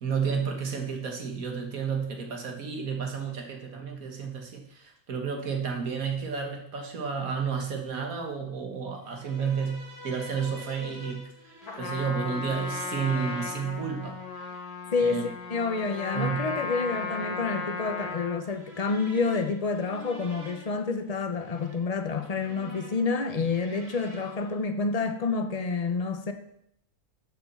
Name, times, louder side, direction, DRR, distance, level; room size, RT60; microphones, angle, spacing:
voice 1, 0.0-11.3 11.8-14.2 15.0-15.2 16.1-16.5, right 6 dB, 65° right, 3 dB, 1.9 m, -31 dB
sound 1, 9.0-24.6, right 1 dB, 45° right, 1.8 m, -47 dB
Trumpet, 11.6-18.5, left 4 dB, 85° left, 2.0 m, -36 dB
voice 2, 14.9-26.3, left 4 dB, 35° left, 7 dB, 0.7 m, -29 dB
7.0 x 6.6 x 7.0 m, 0.73 s
omnidirectional pair, 1.6 m